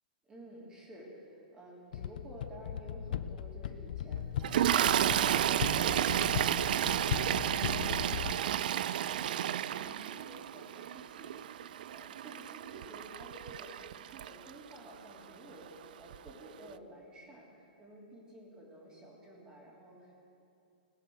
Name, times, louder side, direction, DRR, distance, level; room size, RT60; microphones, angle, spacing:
voice 1, 0.3-20.1, right 1 dB, 15° right, -3 dB, 3.1 m, -52 dB
sound 1, 1.9-8.3, left 9 dB, 65° left, 0.5 m, -38 dB
Toilet flush, 4.4-14.7 15.7-15.9 16.1-16.3, right 11 dB, 65° right, 0.4 m, -32 dB
20.5 x 7.2 x 6.2 m, 2.6 s
hypercardioid pair, 145°, 5 cm